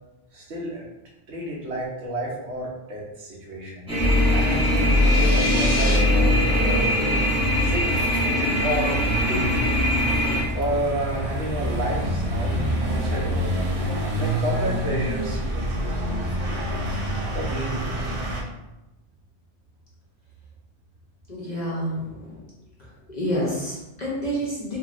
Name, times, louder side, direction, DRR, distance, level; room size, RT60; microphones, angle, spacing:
voice 1, 0.3-0.9 1.3-3.9 4.3-7.3 7.6-7.9 8.5-8.9 9.3-10.0 10.5-13.5 14.2-16.9 17.3-18.1, right 1 dB, 70° right, -3 dB, 1.0 m, -31 dB
sound 1, 3.9-10.4, left 1 dB, 5° right, 0.6 m, -24 dB
sound 2, 4.0-18.4, equal, 50° right, 0.4 m, -25 dB
sound 3, 4.8-6.0, left 2 dB, 70° left, 0.9 m, -32 dB
voice 2, 21.3-22.4 23.1-24.8, equal, 45° left, -5 dB, 0.6 m, -28 dB
2.9 x 2.7 x 2.4 m, 0.98 s
omnidirectional pair, 1.2 m